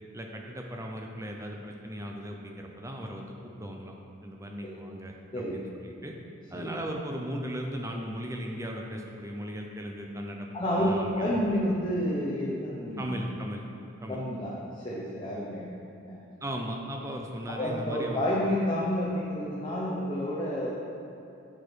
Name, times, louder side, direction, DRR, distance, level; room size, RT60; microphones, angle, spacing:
voice 1, 0.1-3.9 4.2-6.1 6.5-11.4 13.0-13.6 14.0-14.2 16.4-18.2, equal, 15° right, 1 dB, 0.6 m, -37 dB
voice 2, 5.3-5.6 6.5-6.7 10.5-13.1 14.1-16.2 17.5-20.7, equal, 25° left, -6 dB, 0.8 m, -30 dB
7.6 x 6.4 x 4.5 m, 2.9 s
head